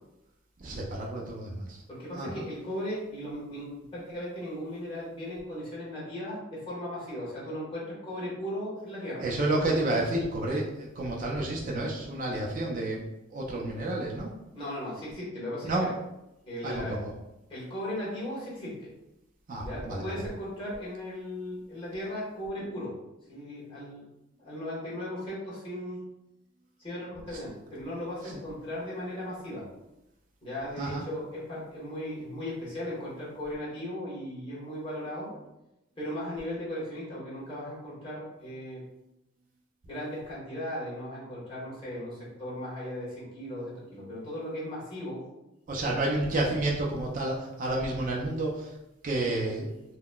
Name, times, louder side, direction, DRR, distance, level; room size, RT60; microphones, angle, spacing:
voice 1, 0.6-1.8 2.2-2.5 9.2-14.3 15.6-15.9 16.6-17.1 19.5-20.2 28.3-28.4 30.8-31.0 45.7-48.7 49.0-49.8, right 2 dB, 40° right, -3 dB, 0.4 m, -30 dB
voice 2, 1.9-9.2 14.5-15.9 16.5-17.0 17.5-18.9 19.6-22.9 23.3-24.0 24.4-26.0 26.8-29.6 30.4-35.3 36.0-38.8 39.8-45.2 45.8-46.0, left 1 dB, 25° left, -8 dB, 1.2 m, -37 dB
3.8 x 2.0 x 2.2 m, 0.92 s
head